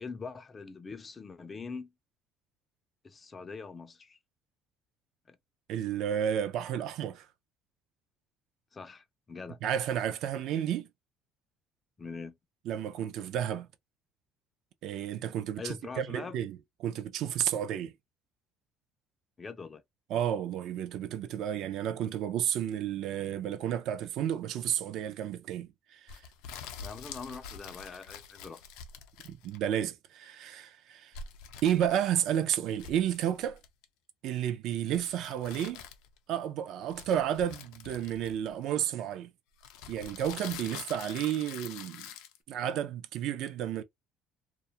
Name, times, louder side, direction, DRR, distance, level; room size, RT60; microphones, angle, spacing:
voice 1, 0.0-1.9 3.0-4.2 5.3-5.4 8.7-9.6 12.0-12.4 15.6-16.4 19.4-19.8 26.8-28.6, left 4 dB, 20° left, 0.3 m, -43 dB
voice 2, 5.7-7.3 9.6-10.9 12.7-13.7 14.8-17.9 20.1-26.1 29.2-31.1 31.6-33.6 34.2-35.8 36.3-39.3 39.9-42.1 42.5-43.8, right 10 dB, 60° right, 0.3 m, -32 dB
sound 1, 26.1-29.7 31.1-32.4 32.7-33.8 34.9-36.2 36.9-38.7 39.6-42.4, left 7 dB, 90° left, 0.4 m, -46 dB
2.3 x 2.0 x 2.7 m
cardioid pair, 150°, 0 cm